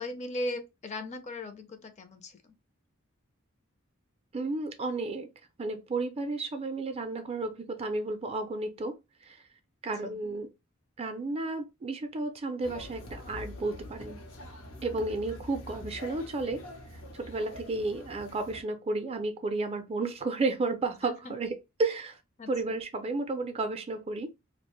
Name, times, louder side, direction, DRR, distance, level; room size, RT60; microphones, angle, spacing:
voice 1, 0.0-2.5 10.0-10.2 21.0-21.4 22.4-22.8, left 1 dB, 35° left, 0.4 m, -38 dB
voice 2, 4.3-5.3 5.6-9.0 9.3-9.4 9.8-10.5 11.0-14.2 14.8-16.6 17.1-21.5 21.8-22.2 22.5-24.3, right 3 dB, 30° right, 0.4 m, -32 dB
sound 1, 12.6-18.6, left 1 dB, 85° left, 0.7 m, -45 dB
2.4 x 2.1 x 2.9 m
head